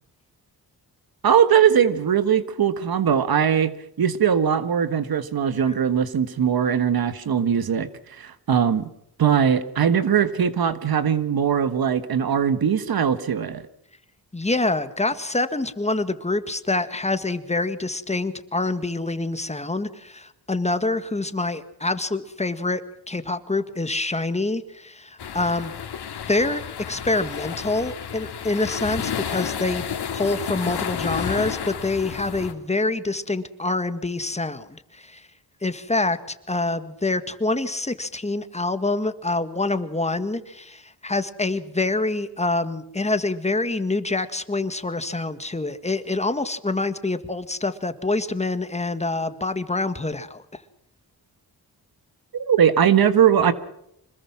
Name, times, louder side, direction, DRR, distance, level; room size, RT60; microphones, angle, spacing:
voice 1, 1.2-3.7 4.0-8.9 9.2-13.6 52.3-53.5, right 8 dB, 70° right, 12 dB, 1.5 m, -20 dB
voice 2, 14.3-22.8 23.1-25.7 26.3-29.9 30.1-35.3 35.6-50.6, left 2 dB, 15° left, 10 dB, 1.8 m, -26 dB
sound 1, 25.2-32.5, left 8 dB, 90° left, 2.5 m, -31 dB
26.0 x 20.5 x 6.0 m, 0.78 s
wide cardioid pair, 110°, 38 cm